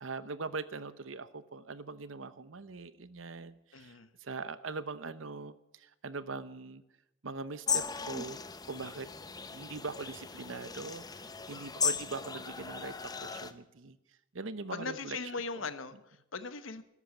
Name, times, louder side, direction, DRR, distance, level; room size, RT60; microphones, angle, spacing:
voice 1, 0.0-6.8 7.2-9.1 9.5-14.0 14.3-15.2 15.5-15.7, right 3 dB, 90° right, 14 dB, 0.9 m, -42 dB
voice 2, 3.7-4.1 14.7-16.8, left 4 dB, 90° left, 12 dB, 1.1 m, -39 dB
sound 1, 7.7-13.5, left 6 dB, 20° left, 0.8 m, -37 dB
13.5 x 11.0 x 8.3 m, 0.89 s
head